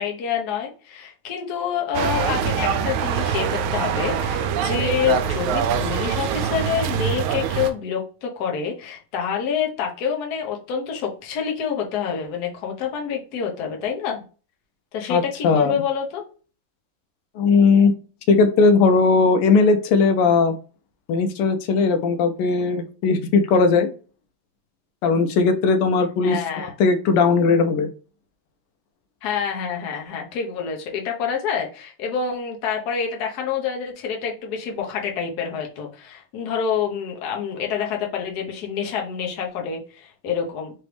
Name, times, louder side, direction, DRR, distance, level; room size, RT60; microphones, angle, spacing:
voice 1, 0.0-14.2 14.9-16.3 26.2-26.7 29.2-40.7, left 7 dB, 60° left, 1 dB, 1.2 m, -27 dB
sound 1, 1.9-7.7, right 7 dB, 80° right, 1.4 m, -24 dB
voice 2, 15.1-15.7 17.3-17.9 18.3-20.5 21.1-23.9 25.0-27.9, left 4 dB, 90° left, 8 dB, 1.5 m, -18 dB
3.9 x 3.2 x 3.2 m, 0.37 s
omnidirectional pair, 2.4 m